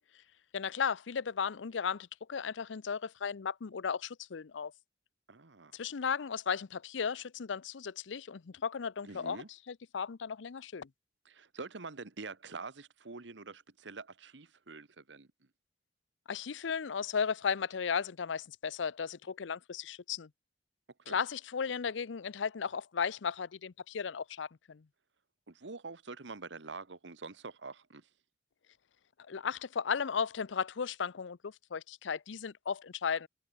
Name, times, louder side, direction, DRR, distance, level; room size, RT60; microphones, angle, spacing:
voice 1, 0.5-4.7 5.7-10.9 16.3-20.3 21.1-24.9 29.3-33.3, left 6 dB, 85° left, 0.6 m, -35 dB
voice 2, 5.3-5.8 9.0-9.5 11.2-15.3 21.1-21.2 25.5-28.1, right 4 dB, 75° right, 1.3 m, -46 dB
head